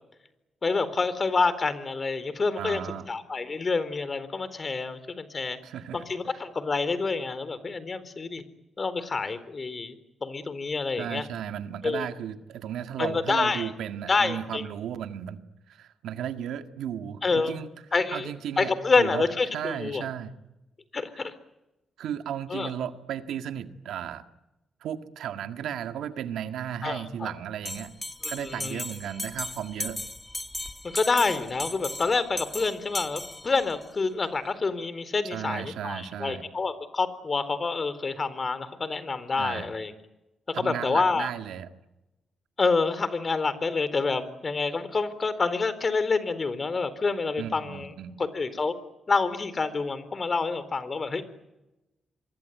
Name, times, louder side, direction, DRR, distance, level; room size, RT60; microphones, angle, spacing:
voice 1, 0.6-2.8 3.1-5.6 5.9-8.4 8.8-9.9 10.2-11.3 11.8-12.1 13.0-13.7 14.1-14.6 17.2-17.5 17.9-18.3 18.6-20.0 20.9-21.3 22.5-22.7 26.8-27.3 28.2-28.8 30.8-39.9 40.6-41.3 42.6-47.9 48.2-48.7 49.1-51.4, left 4 dB, 45° left, 14 dB, 4.1 m, -27 dB
voice 2, 2.6-3.1 5.6-6.0 11.0-17.7 18.1-19.2 19.5-20.4 22.0-24.2 24.8-27.9 28.3-30.0 35.3-36.5 39.4-39.7 40.5-41.7 47.4-48.2, right 9 dB, 85° right, 8 dB, 1.8 m, -35 dB
Bell, 27.6-33.9, left 1 dB, 15° left, 1.8 m, -37 dB
26.5 x 24.0 x 9.4 m, 0.98 s
supercardioid pair, 50°, 0 cm